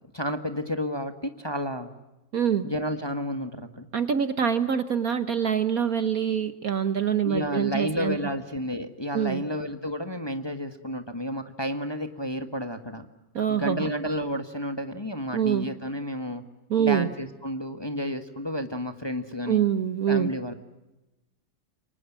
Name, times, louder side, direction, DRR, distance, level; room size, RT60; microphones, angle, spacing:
voice 1, 0.1-1.9 2.6-3.9 7.2-13.1 13.5-16.4 16.8-19.6 20.1-20.5, equal, 15° left, 7 dB, 1.5 m, -31 dB
voice 2, 2.3-2.6 3.9-8.2 9.1-9.4 13.3-13.9 15.3-15.7 16.7-17.1 19.5-20.3, right 8 dB, 55° right, 11 dB, 1.3 m, -25 dB
29.0 x 24.5 x 7.5 m, 1.0 s
omnidirectional pair, 2.1 m